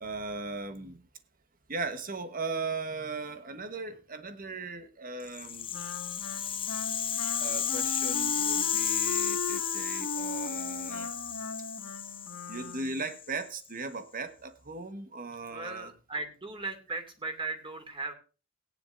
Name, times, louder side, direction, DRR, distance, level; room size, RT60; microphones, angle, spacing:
voice 1, 0.0-1.0 1.7-5.8 7.4-11.1 12.5-15.9, right 3 dB, 40° right, 10 dB, 1.3 m, -38 dB
Rattle (instrument), 5.3-13.5, left 9 dB, 25° left, 0.6 m, -33 dB
Wind instrument woodwind instrument, 5.7-13.1, left 2 dB, 80° left, 1.9 m, -38 dB
voice 2, 15.5-18.1, right 3 dB, 25° right, 6 dB, 2.6 m, -37 dB
18.5 x 10.0 x 2.6 m, 0.35 s
head